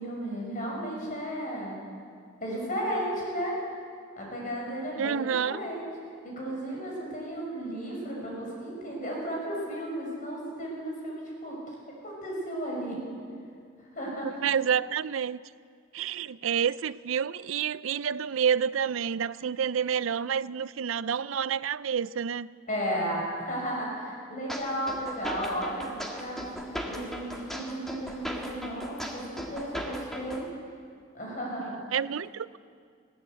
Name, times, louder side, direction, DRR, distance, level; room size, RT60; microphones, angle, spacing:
voice 1, 0.0-1.8 2.4-3.6 4.2-5.9 6.2-11.6 12.0-13.0 13.8-14.4 22.7-30.4 31.1-31.9, equal, 40° left, -2 dB, 5.9 m, -34 dB
voice 2, 5.0-5.6 14.2-15.4 15.9-22.5 31.9-32.6, right 7 dB, 85° right, 18 dB, 0.5 m, -29 dB
sound 1, 24.5-30.5, equal, ahead, 1.9 m, -37 dB
20.5 x 17.0 x 8.1 m, 2.2 s
head